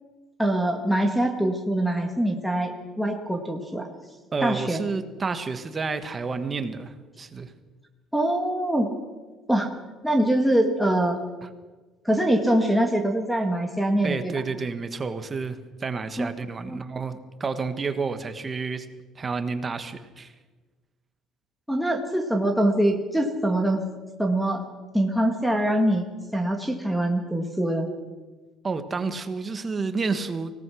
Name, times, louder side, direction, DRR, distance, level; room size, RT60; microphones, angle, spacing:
voice 1, 0.4-3.9 4.4-4.8 8.1-8.9 9.5-9.7 10.0-11.2 12.0-14.3 16.2-16.3 16.6-16.8 21.7-23.8 24.2-24.6 24.9-26.1 26.3-27.9, right 1 dB, ahead, 1 dB, 1.6 m, -23 dB
voice 2, 4.3-7.5 11.4-11.5 14.0-18.9 19.2-20.3 28.6-30.5, right 4 dB, 20° right, 9 dB, 1.4 m, -30 dB
25.0 x 17.5 x 6.3 m, 1.3 s
cardioid pair, 170°, 0 cm